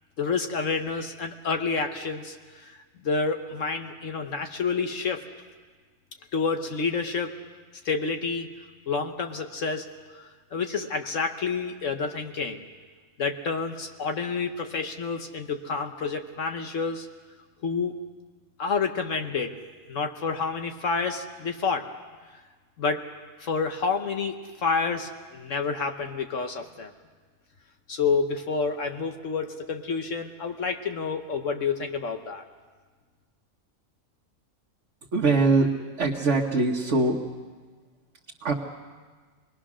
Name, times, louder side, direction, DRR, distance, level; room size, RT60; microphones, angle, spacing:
voice 1, 0.2-2.7 3.0-5.2 6.3-7.4 7.8-8.5 8.9-9.9 10.1-12.6 13.2-17.1 17.6-17.9 18.6-19.5 19.9-21.9 22.8-23.1 23.4-26.9 27.9-32.4, left 4 dB, 65° left, 5 dB, 1.4 m, -29 dB
voice 2, 35.1-35.7 36.0-37.2 38.4-38.5, right 3 dB, 55° right, -1 dB, 1.6 m, -22 dB
27.0 x 20.5 x 6.2 m, 1.5 s
omnidirectional pair, 1.4 m